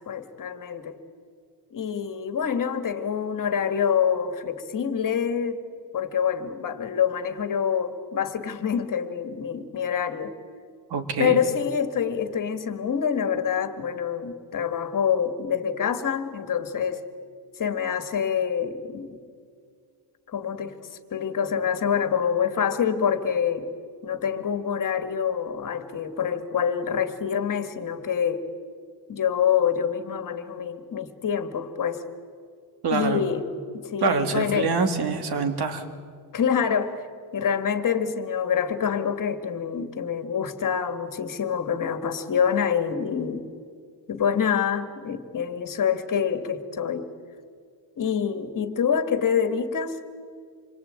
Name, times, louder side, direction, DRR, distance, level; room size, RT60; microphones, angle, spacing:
voice 1, 0.1-1.0 1.7-5.6 5.9-10.4 11.2-17.0 17.6-19.2 20.3-23.7 24.0-28.5 29.1-32.0 32.9-34.7 36.3-37.0 37.3-43.5 44.1-47.1 48.0-50.0, left 7 dB, 40° left, 9 dB, 2.2 m, -26 dB
voice 2, 10.9-11.4 32.8-33.2 34.0-35.8, right 4 dB, 50° right, 7 dB, 2.9 m, -25 dB
27.5 x 23.0 x 8.9 m, 2.1 s
cardioid pair, 140°, 49 cm